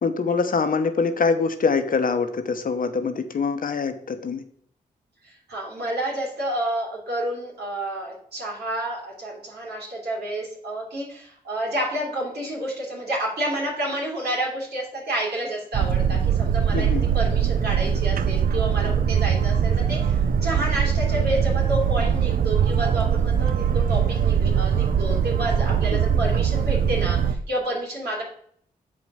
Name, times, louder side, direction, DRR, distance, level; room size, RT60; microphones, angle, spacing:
voice 1, 0.0-4.4 16.7-17.1 25.9-26.0, left 4 dB, 55° left, 9 dB, 1.0 m, -24 dB
voice 2, 5.2-28.2, right 1 dB, 80° right, -3 dB, 3.1 m, -29 dB
Boat Water vehicle, 15.7-27.3, right 8 dB, 60° right, 0.6 m, -22 dB
6.9 x 5.0 x 5.6 m, 0.64 s
supercardioid pair, 45°, 17 cm